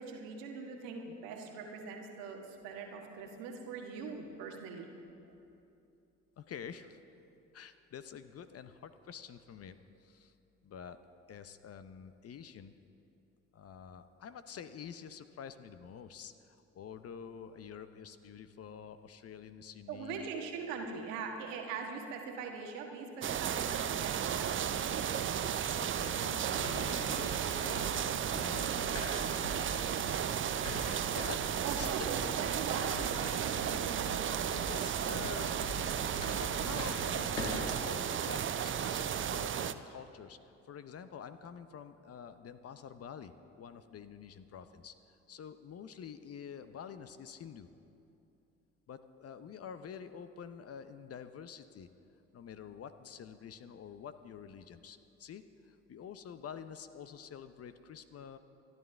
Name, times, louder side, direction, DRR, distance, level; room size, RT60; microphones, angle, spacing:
voice 1, 0.0-4.9 19.9-25.1 31.6-34.1, right 5 dB, 70° right, 2 dB, 1.6 m, -42 dB
voice 2, 6.4-7.0 7.5-10.3 10.6-11.0 11.3-12.7 13.5-20.3 25.8-28.9 29.6-30.4 30.8-32.0 32.5-32.6 33.7-34.0 34.5-35.6 36.4-40.4 40.7-44.9 45.3-47.7 48.9-51.9 52.3-58.4, left 7 dB, 40° left, 11 dB, 0.8 m, -48 dB
sound 1, 23.2-39.7, right 9 dB, 35° right, 0.6 m, -34 dB
sound 2, 26.2-37.8, equal, 85° left, 1.6 m, -43 dB
26.0 x 11.0 x 3.4 m, 2.8 s
figure-of-eight pair, 50°, 37 cm